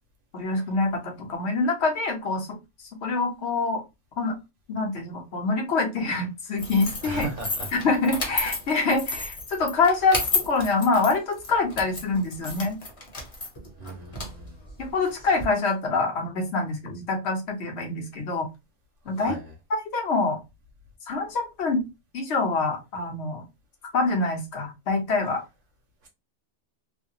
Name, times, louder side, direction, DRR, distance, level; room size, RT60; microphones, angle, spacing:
voice 1, 0.3-2.6 3.0-3.8 4.2-4.3 4.7-7.3 7.7-12.8 14.8-18.5 19.1-19.3 19.9-20.4 21.1-21.8 22.1-23.4 23.9-25.4, left 3 dB, 65° left, 1.1 m, -25 dB
sound 1, 6.6-15.4, left 3 dB, 30° left, 0.9 m, -32 dB
voice 2, 7.0-7.7 13.8-14.6 19.2-19.5 26.0-26.1, right 2 dB, 90° right, 1.4 m, -36 dB
3.2 x 2.2 x 2.7 m
omnidirectional pair, 1.2 m